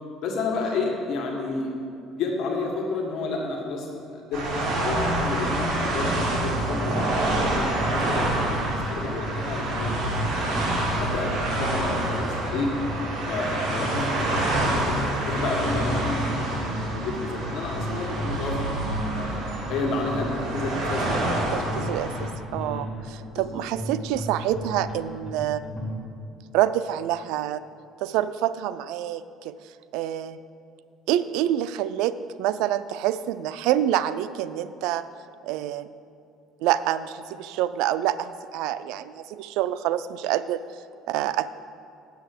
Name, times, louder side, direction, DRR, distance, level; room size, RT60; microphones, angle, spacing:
voice 1, 0.2-1.7 2.2-7.1 7.4-8.4 8.7-10.6 11.0-12.7 13.3-19.3 19.7-21.6 22.6-22.9 23.3-23.6, left 3 dB, 60° left, -1 dB, 1.7 m, -31 dB
sound 1, 4.3-22.3, right 1 dB, 60° right, 2.4 m, -27 dB
sound 2, 6.0-25.9, equal, 5° right, 2.1 m, -35 dB
voice 2, 21.5-25.6 26.5-27.6 28.0-29.5 29.9-30.4 31.1-32.1 32.4-35.0 35.4-35.9 36.6-40.6 41.1-41.5, right 12 dB, 80° right, 14 dB, 0.4 m, -27 dB
8.0 x 7.2 x 8.0 m, 2.5 s
cardioid pair, 140°, 0 cm